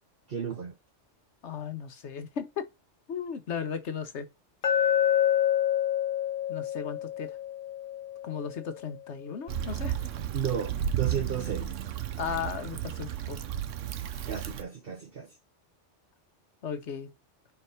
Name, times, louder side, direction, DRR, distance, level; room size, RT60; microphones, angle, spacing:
voice 1, 0.3-0.7 10.3-11.7 14.3-15.3, right 8 dB, 50° right, 1.2 m, -33 dB
voice 2, 1.4-2.7 3.1-4.3 6.5-7.4 8.2-10.1 12.2-13.5 16.6-17.1, left 7 dB, 70° left, 1.3 m, -36 dB
Glass, 4.6-8.8, left 10 dB, 50° left, 0.8 m, -27 dB
Stream / Traffic noise roadway noise / Trickle dribble, 9.5-14.6, right 10 dB, 85° right, 1.1 m, -33 dB
4.6 x 4.6 x 5.6 m
omnidirectional pair, 1.2 m